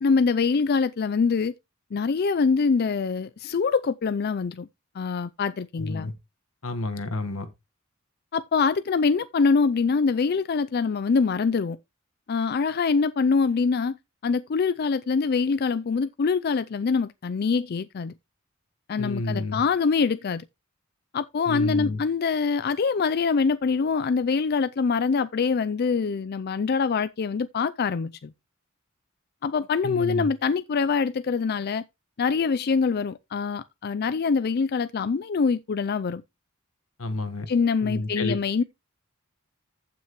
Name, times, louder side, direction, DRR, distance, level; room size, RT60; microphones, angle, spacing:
voice 1, 0.0-1.5 1.9-4.7 4.9-6.1 8.3-11.8 12.3-13.9 14.2-18.1 18.9-20.4 21.1-28.3 29.4-31.8 32.2-36.2 37.5-38.6, left 5 dB, 50° left, 0.4 m, -24 dB
voice 2, 5.8-6.1 6.6-7.5 19.0-19.6 21.5-22.0 29.8-30.3 37.0-37.5 37.8-38.4, left 2 dB, 85° left, 1.5 m, -30 dB
14.5 x 6.1 x 3.0 m
head